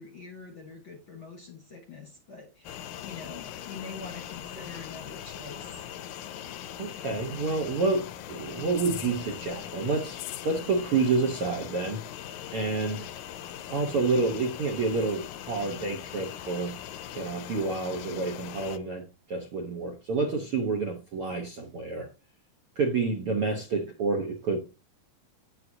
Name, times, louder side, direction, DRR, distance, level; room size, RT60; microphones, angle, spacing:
voice 1, 0.0-5.9, left 4 dB, 55° left, 1.5 m, -45 dB
sound 1, 2.6-18.8, left 11 dB, 75° left, 1.8 m, -40 dB
voice 2, 6.8-12.0 12.5-13.1 13.7-16.8 17.1-22.1 22.7-24.6, right 3 dB, 65° right, 1.4 m, -29 dB
9.4 x 8.5 x 2.8 m
omnidirectional pair, 4.1 m